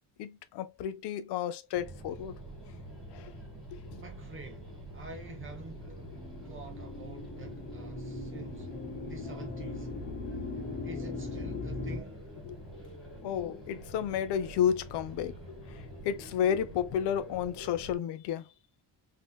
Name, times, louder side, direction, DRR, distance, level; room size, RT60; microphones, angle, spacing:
voice 1, 0.2-2.3 3.1-3.3 3.7-4.0 12.4-12.6 13.2-15.3 16.0-18.5, left 9 dB, 80° left, 0.6 m, -32 dB
sound 1, 1.7-18.0, right 1 dB, ahead, 1.8 m, -46 dB
voice 2, 4.0-6.0 6.4-8.8 9.0-9.9 10.8-12.2, right 3 dB, 30° right, 0.7 m, -48 dB
sound 2, 4.8-12.0, left 3 dB, 25° left, 0.5 m, -40 dB
3.6 x 2.8 x 2.2 m
cardioid pair, 165°, 40 cm